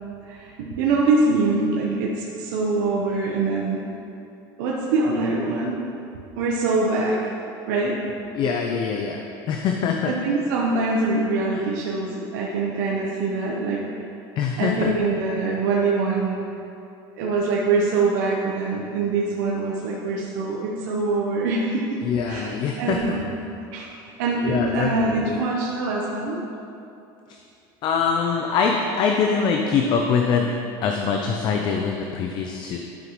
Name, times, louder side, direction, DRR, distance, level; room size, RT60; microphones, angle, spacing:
voice 1, 0.2-3.8 4.6-5.8 6.4-7.3 7.7-8.0 10.0-13.8 14.6-16.4 17.2-22.0 22.3-23.3 23.7-23.9 24.2-26.4, right 3 dB, 80° right, -3 dB, 0.9 m, -24 dB
voice 2, 8.3-9.2 9.5-10.1 14.4-14.9 22.0-23.0 24.4-25.4 27.8-30.5 30.8-32.8, left 6 dB, 45° left, 2 dB, 0.6 m, -23 dB
11.0 x 5.6 x 3.1 m, 2.8 s
supercardioid pair, 115°, 10 cm